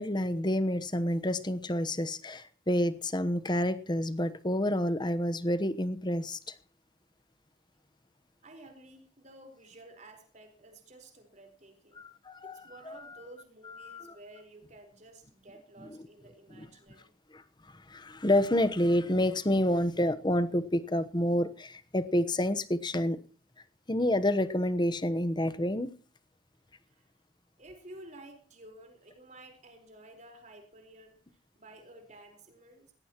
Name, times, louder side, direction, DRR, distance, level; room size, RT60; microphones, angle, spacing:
voice 1, 0.0-6.5 12.0-12.6 12.9-13.0 13.8-14.1 16.6-16.7 17.3-17.4 17.9-23.2 23.9-25.9, left 1 dB, 25° left, 12 dB, 1.0 m, -28 dB
voice 2, 8.4-12.0 12.4-17.1 26.9-27.1 27.6-31.2 31.6-32.9, right 1 dB, 40° right, 5 dB, 4.4 m, -52 dB
18.0 x 17.0 x 3.0 m, 0.40 s
head